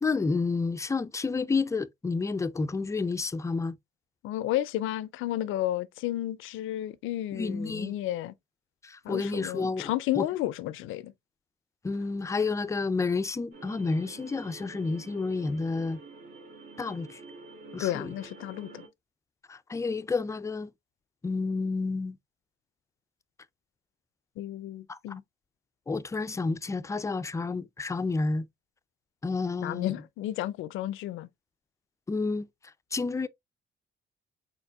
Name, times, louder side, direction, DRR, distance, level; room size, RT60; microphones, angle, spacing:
voice 1, 0.0-3.8 7.3-7.9 8.8-10.2 11.8-16.0 16.8-17.2 17.7-18.1 19.5-20.7 21.2-22.2 24.9-25.2 25.9-28.5 29.2-29.9 32.1-32.4 32.9-33.3, left 4 dB, 15° left, 0.3 m, -30 dB
voice 2, 4.2-8.3 9.0-11.1 17.8-18.8 24.4-25.2 29.6-31.3, left 14 dB, 85° left, 0.4 m, -32 dB
sound 1, 13.5-18.9, right 3 dB, 55° right, 1.8 m, -48 dB
4.4 x 4.3 x 2.2 m
cardioid pair, 90°, 20 cm